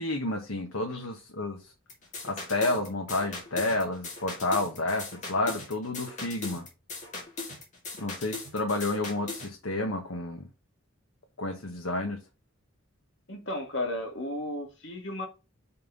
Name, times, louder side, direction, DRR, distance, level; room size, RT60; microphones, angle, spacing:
voice 1, 0.0-1.6 2.2-6.7 8.0-10.5 11.4-12.2, left 2 dB, 85° left, 1.3 m, -30 dB
sound 1, 1.9-9.5, left 3 dB, 35° left, 2.2 m, -39 dB
voice 2, 13.3-15.3, left 1 dB, 60° left, 1.9 m, -34 dB
5.5 x 4.3 x 5.2 m
head